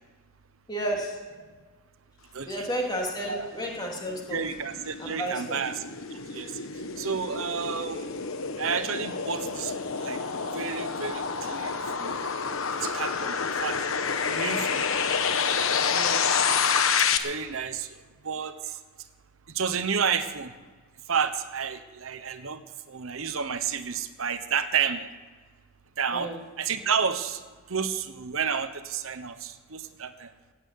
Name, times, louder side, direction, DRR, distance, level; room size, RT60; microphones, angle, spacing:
voice 1, 0.7-1.2 2.5-4.4 5.0-5.6 15.9-16.3 26.1-26.4, right 1 dB, 20° left, -1 dB, 2.9 m, -32 dB
voice 2, 2.3-2.7 3.2-3.5 4.3-5.9 6.3-6.5 7.0-8.1 8.6-9.7 10.0-10.2 10.5-12.2 12.8-14.8 17.2-18.8 19.5-20.5 21.1-22.6 22.9-25.1 26.0-26.3 26.6-27.4 27.7-30.3, right 6 dB, 70° right, 10 dB, 0.9 m, -31 dB
sound 1, 4.0-17.2, left 6 dB, 70° left, 1.0 m, -28 dB
16.0 x 8.6 x 9.3 m, 1.4 s
head